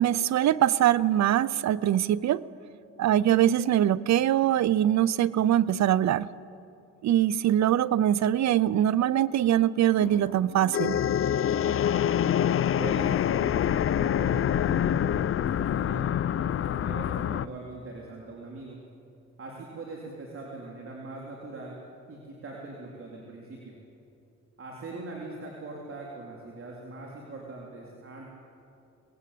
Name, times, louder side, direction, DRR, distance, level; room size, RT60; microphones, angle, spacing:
voice 1, 0.0-2.4 3.0-6.3 7.0-11.0, right 11 dB, 65° right, 0.7 m, -23 dB
sound 1, 10.0-17.5, left 10 dB, 45° left, 0.6 m, -26 dB
voice 2, 12.8-18.8 19.4-21.8 22.1-23.8 24.6-28.3, right 3 dB, 45° right, 3.9 m, -41 dB
24.0 x 20.0 x 8.5 m
cardioid pair, 90°, 30 cm